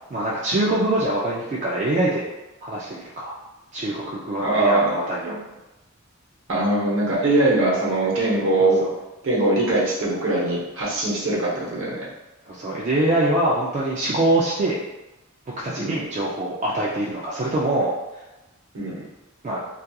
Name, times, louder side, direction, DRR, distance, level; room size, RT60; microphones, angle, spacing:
voice 1, 0.0-2.3 2.6-3.3 3.7-5.4 8.6-8.9 12.5-14.8 15.5-17.9 19.4-19.6, right 1 dB, 35° right, -6 dB, 0.3 m, -24 dB
voice 2, 4.4-4.9 5.3-5.4 6.5-8.9 9.2-12.1 15.8-16.0 18.7-19.0, right 2 dB, 60° right, -6 dB, 0.9 m, -21 dB
2.8 x 2.4 x 2.2 m, 1.0 s
head